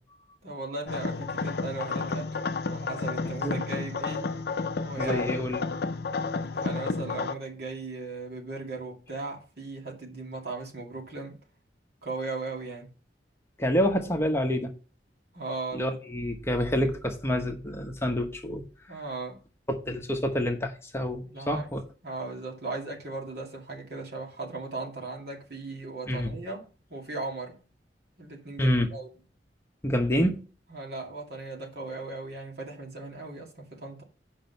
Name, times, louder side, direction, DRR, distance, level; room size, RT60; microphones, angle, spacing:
voice 1, 0.4-4.3 4.8-5.2 6.5-11.4 12.0-12.9 15.3-16.0 18.9-19.4 21.3-21.7 22.0-27.6 28.2-29.1 30.7-34.0, right 3 dB, 60° right, 2.4 m, -37 dB
sound 1, 0.9-7.3, left 4 dB, 60° left, 0.6 m, -31 dB
voice 2, 5.0-5.6 13.6-14.7 15.7-18.6 19.7-21.8 26.1-26.3 28.6-28.9 29.8-30.4, equal, 15° left, 0.9 m, -27 dB
7.6 x 5.2 x 5.5 m
head